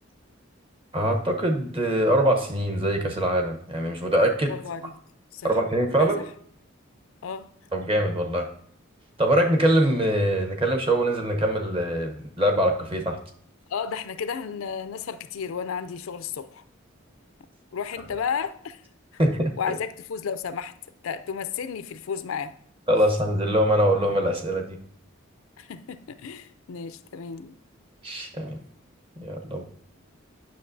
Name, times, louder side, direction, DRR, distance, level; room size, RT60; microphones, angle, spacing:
voice 1, 0.9-4.5 5.4-6.2 7.7-8.5 9.2-13.2 19.2-19.5 22.9-24.8 28.0-28.6 29.2-29.6, right 1 dB, 25° right, 0.8 m, -23 dB
voice 2, 4.5-5.0 5.3-5.6 6.0-6.1 7.2-7.5 13.7-16.6 17.7-18.8 19.6-20.7 21.0-22.6 25.6-27.5, left 6 dB, 80° left, 0.4 m, -33 dB
9.4 x 6.2 x 2.6 m
head